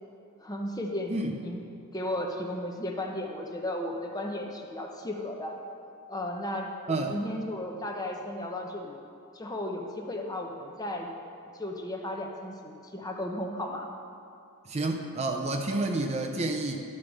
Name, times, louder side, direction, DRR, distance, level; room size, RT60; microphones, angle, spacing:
voice 1, 0.4-1.6 1.9-5.5 6.1-9.0 9.3-11.1 11.5-13.9, left 1 dB, 15° left, 1 dB, 0.7 m, -35 dB
voice 2, 14.6-16.8, right 2 dB, 30° right, 3 dB, 0.5 m, -29 dB
12.0 x 4.8 x 6.2 m, 2.6 s
head